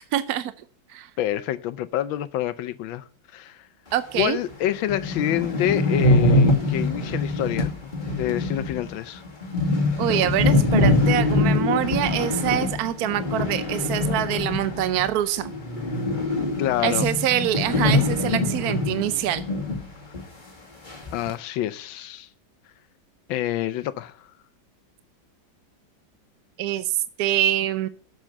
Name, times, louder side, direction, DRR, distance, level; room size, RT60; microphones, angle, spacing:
voice 1, 0.1-0.5 0.9-1.1 3.9-4.4 10.0-15.5 16.8-19.4 26.6-27.9, right 12 dB, 70° right, 0.9 m, -25 dB
voice 2, 1.2-3.0 3.3-3.7 4.1-9.2 16.6-17.1 21.1-22.3 23.3-24.3, left 12 dB, 80° left, 1.4 m, -27 dB
sound 1, 4.2-4.3 4.6-4.7 4.9-15.1 15.4-19.9 20.1-20.2 20.9-21.3, left 2 dB, 25° left, 2.2 m, -23 dB
7.6 x 7.3 x 7.9 m
omnidirectional pair, 2.1 m